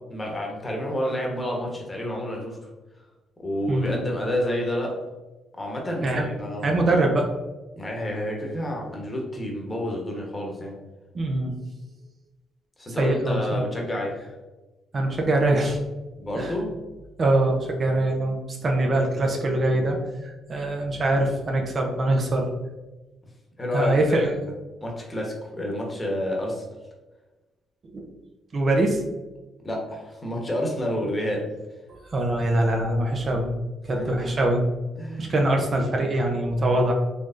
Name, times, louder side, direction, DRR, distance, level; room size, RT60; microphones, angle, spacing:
voice 1, 0.1-2.7 3.4-5.0 5.5-6.7 7.8-10.8 12.8-14.3 16.2-16.8 23.6-24.5 24.8-26.6 29.6-31.5 33.8-34.3 35.0-35.4, left 1 dB, 25° left, -1 dB, 1.1 m, -29 dB
voice 2, 6.6-7.3 11.1-11.5 12.9-13.6 14.9-15.8 16.4-16.5 17.2-22.5 23.7-24.3 27.9-28.1 28.5-29.0 31.9-33.5 33.8-34.6 35.2-36.9, right 1 dB, 40° right, 2 dB, 0.6 m, -23 dB
4.2 x 3.1 x 2.5 m, 1.1 s
cardioid pair, 90°, 0 cm